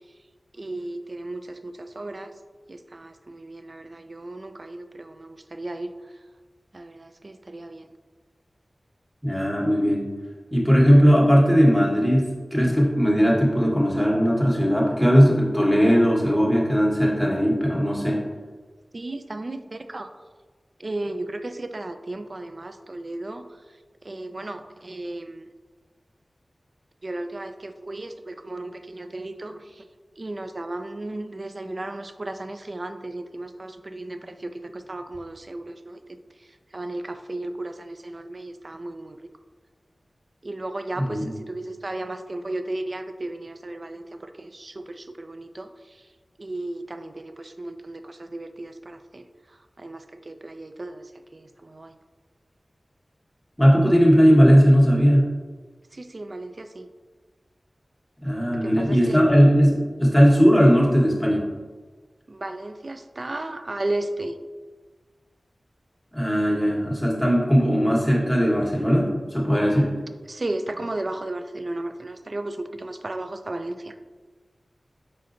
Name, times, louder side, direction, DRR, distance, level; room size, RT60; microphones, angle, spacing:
voice 1, 0.6-2.3 2.7-5.9 6.7-7.9 18.9-20.1 20.8-23.4 24.0-25.5 27.0-29.8 30.2-36.2 36.7-39.3 40.4-46.0 46.4-49.3 49.8-51.9 55.9-56.9 58.5-59.2 62.3-64.4 70.3-73.9, right 2 dB, 50° right, 8 dB, 0.3 m, -35 dB
voice 2, 9.2-10.0 10.5-18.2 41.0-41.3 53.6-55.3 58.2-61.4 66.1-69.9, equal, 5° right, -4 dB, 1.2 m, -18 dB
5.0 x 4.2 x 2.5 m, 1.4 s
wide cardioid pair, 60°, 0 cm